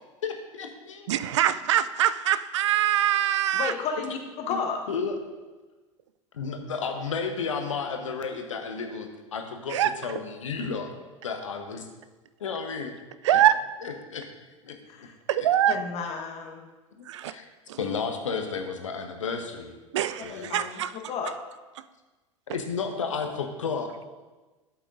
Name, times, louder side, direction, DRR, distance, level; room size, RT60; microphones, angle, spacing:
voice 1, 0.2-1.1 4.5-4.6 4.9-5.2 6.3-10.9 11.2-11.9 12.4-12.9 14.1-14.3 14.6-15.1 17.0-17.5 17.8-19.8 20.2-20.5 22.5-23.9, left 5 dB, 75° left, 5 dB, 1.0 m, -32 dB
voice 2, 1.1-3.7 9.7-10.1 13.2-13.6 15.3-15.7 17.0-17.4 17.7-17.8 19.9-20.9, right 11 dB, 65° right, 15 dB, 0.4 m, -24 dB
voice 3, 3.5-4.8 14.9-15.1 15.7-16.7 20.2-20.8 21.1-21.4, left 5 dB, 40° left, 3 dB, 1.3 m, -32 dB
12.0 x 8.1 x 2.6 m, 1.2 s
figure-of-eight pair, 80°, 17 cm